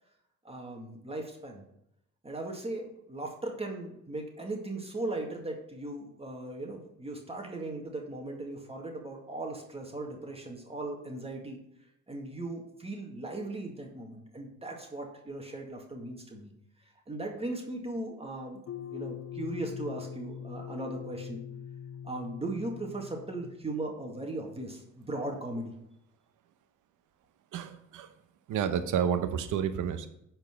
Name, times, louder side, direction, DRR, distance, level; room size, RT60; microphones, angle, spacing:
voice 1, 0.4-1.6 2.2-11.6 12.1-16.5 17.1-18.6 18.9-21.4 22.0-25.7, right 2 dB, 20° right, 1 dB, 2.0 m, -38 dB
sound 1, 18.7-23.9, left 9 dB, 55° left, 0.6 m, -42 dB
voice 2, 27.5-28.2 28.5-30.1, right 8 dB, 85° right, 10 dB, 1.0 m, -30 dB
10.5 x 4.5 x 5.9 m, 0.79 s
cardioid pair, 90°, 30 cm